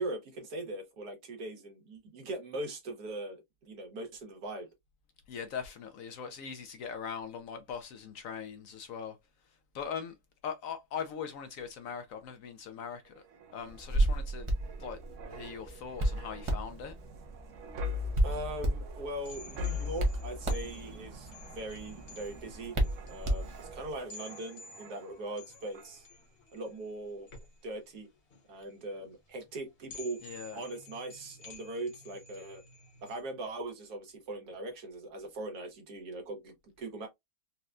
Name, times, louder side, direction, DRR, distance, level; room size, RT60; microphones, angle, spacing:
voice 1, 0.0-4.7 18.2-22.7 23.1-26.0 26.5-27.3 27.6-28.1 28.5-30.2 30.5-32.6 33.0-37.1, right 1 dB, 75° right, 1.6 m, -40 dB
voice 2, 5.3-9.2 9.7-10.1 10.4-13.2 13.5-14.5 14.8-15.0 15.3-16.9 30.2-30.6, left 7 dB, 70° left, 0.9 m, -40 dB
sound 1, 13.1-25.4 25.7-26.0, left 3 dB, 60° right, 0.9 m, -43 dB
Hands, 13.7-23.9, right 1 dB, 45° right, 0.4 m, -33 dB
sound 2, 19.2-33.2, left 3 dB, 45° left, 1.0 m, -53 dB
4.1 x 2.2 x 2.4 m
omnidirectional pair, 1.7 m